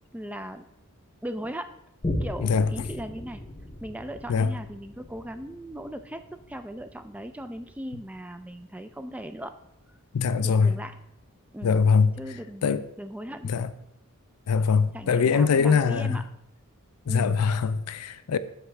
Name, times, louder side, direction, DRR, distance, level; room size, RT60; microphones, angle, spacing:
voice 1, 0.1-0.6 1.2-1.7 2.2-3.4 3.8-9.6 10.4-11.0 11.5-11.7 12.2-12.7 13.0-13.5 14.9-16.2 17.1-17.4, right 1 dB, 5° right, 0.3 m, -38 dB
Boom, 2.0-8.9 9.5-9.6, left 1 dB, 25° left, 0.7 m, -38 dB
voice 2, 10.1-10.8 11.6-12.2 12.6-12.8 13.4-13.7 14.5-16.2 17.1-18.4, left 5 dB, 90° left, 0.4 m, -22 dB
9.9 x 6.0 x 3.3 m
head